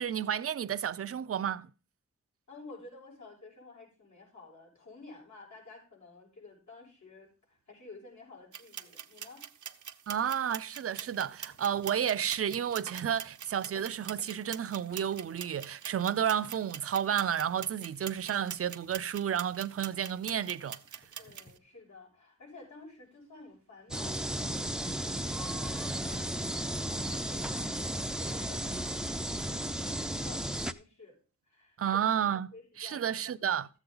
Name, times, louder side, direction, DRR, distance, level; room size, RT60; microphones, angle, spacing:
voice 1, 0.0-1.7 10.1-20.8 31.8-33.7, right 9 dB, 50° right, 0.5 m, -31 dB
voice 2, 2.5-9.4 21.2-31.2 31.5-32.0 32.5-33.1, left 3 dB, 75° left, 6.7 m, -52 dB
sound 1, 8.5-21.5, right 8 dB, 90° right, 0.8 m, -45 dB
sound 2, 10.9-21.5, left 2 dB, 50° left, 3.0 m, -62 dB
sound 3, 23.9-30.7, right 1 dB, ahead, 0.5 m, -34 dB
14.0 x 8.1 x 3.9 m
wide cardioid pair, 120°, 29 cm